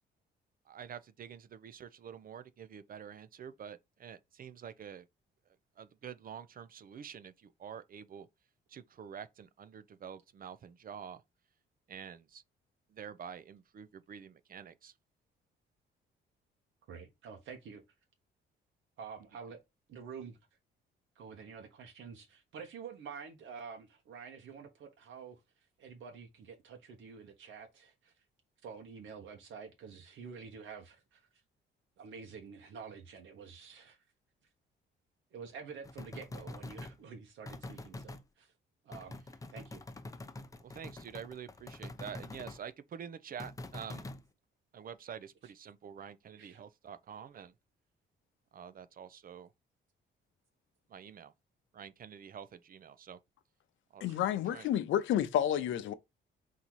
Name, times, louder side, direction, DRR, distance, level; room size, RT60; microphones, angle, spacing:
voice 1, 0.7-5.1 5.8-8.3 8.7-11.2 11.9-12.4 12.9-14.9 40.6-44.1 44.7-47.5 48.5-49.5 50.9-51.3 51.7-53.2 53.9-54.1 54.5-54.7, right 8 dB, 45° right, 0.6 m, -47 dB
voice 2, 16.9-17.8 19.0-19.6 19.9-20.4 21.2-25.4 25.8-28.1 28.6-31.3 32.0-34.0 35.3-38.5 38.8-39.1 39.5-39.8 46.4-46.6 54.1-54.2, right 6 dB, 75° right, 1.0 m, -48 dB
sound 1, 35.8-37.0 37.5-38.2 38.9-42.6 43.4-44.2, left 2 dB, 15° left, 0.6 m, -45 dB
voice 3, 54.0-55.9, left 10 dB, 75° left, 0.6 m, -30 dB
4.0 x 2.7 x 4.6 m
cardioid pair, 90°, 20 cm